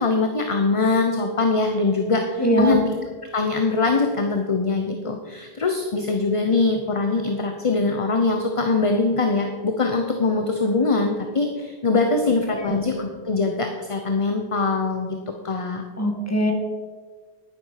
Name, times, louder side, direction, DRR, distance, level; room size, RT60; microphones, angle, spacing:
voice 1, 0.0-2.8 3.3-15.2 15.4-15.8, left 3 dB, 30° left, 4 dB, 0.9 m, -22 dB
voice 2, 2.4-2.8 12.5-12.7 16.0-16.5, right 1 dB, 15° left, 2 dB, 1.9 m, -21 dB
11.0 x 10.0 x 5.8 m, 1.5 s
omnidirectional pair, 1.1 m